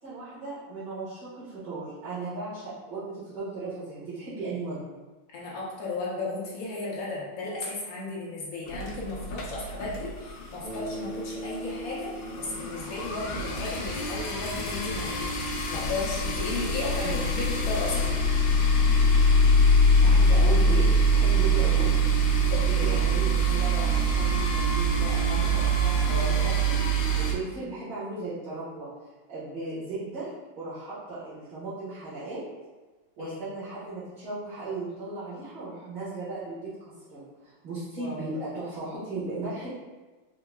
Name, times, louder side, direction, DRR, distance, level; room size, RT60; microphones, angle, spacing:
voice 1, 0.0-5.0 17.0-17.3 20.0-22.0 22.5-26.8 27.2-28.9 29.3-30.3 30.6-32.4 33.2-39.7, right 3 dB, 60° right, -15 dB, 2.0 m, -36 dB
voice 2, 5.3-15.2 15.7-18.1 22.5-23.0 26.1-26.5 29.6-29.9 33.2-33.4 38.0-38.3, left 3 dB, 50° left, -6 dB, 1.3 m, -35 dB
sound 1, 8.7-10.5 10.7-11.0 11.3-11.4 11.5-27.3, right 1 dB, 90° left, 1.5 m, -24 dB
Bass guitar, 10.6-15.0, right 1 dB, 25° right, 0.5 m, -40 dB
4.5 x 2.9 x 2.3 m, 1.3 s
omnidirectional pair, 2.2 m